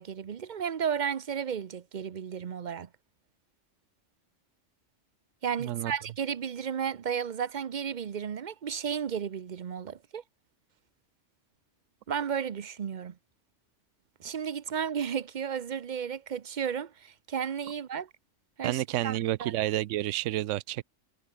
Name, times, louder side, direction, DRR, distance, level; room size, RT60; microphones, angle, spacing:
voice 1, 0.0-2.9 5.4-10.2 12.1-13.2 14.2-18.1 18.6-19.5, right 7 dB, 45° right, 0.7 m, -33 dB
voice 2, 5.6-5.9 18.6-20.8, right 15 dB, 80° right, 0.9 m, -30 dB
omnidirectional pair, 1.3 m